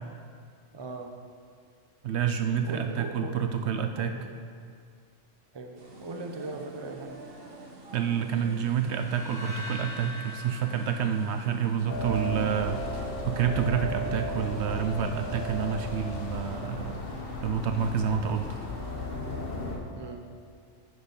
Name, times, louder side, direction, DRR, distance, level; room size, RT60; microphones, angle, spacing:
voice 1, 0.7-1.1 2.6-3.3 4.0-4.3 5.5-5.7 6.0-7.2 19.9-20.2, right 3 dB, 25° right, 4 dB, 0.6 m, -39 dB
voice 2, 2.0-4.1 7.9-17.0 17.4-18.6, right 7 dB, 70° right, 7 dB, 0.8 m, -28 dB
sound 1, 5.8-19.6, right 1 dB, 50° right, 1.2 m, -48 dB
sound 2, 8.9-12.1, left 1 dB, 5° right, 1.5 m, -42 dB
sound 3, 11.9-19.8, left 1 dB, 50° left, 1.2 m, -35 dB
9.7 x 6.5 x 5.3 m, 2.2 s
omnidirectional pair, 1.3 m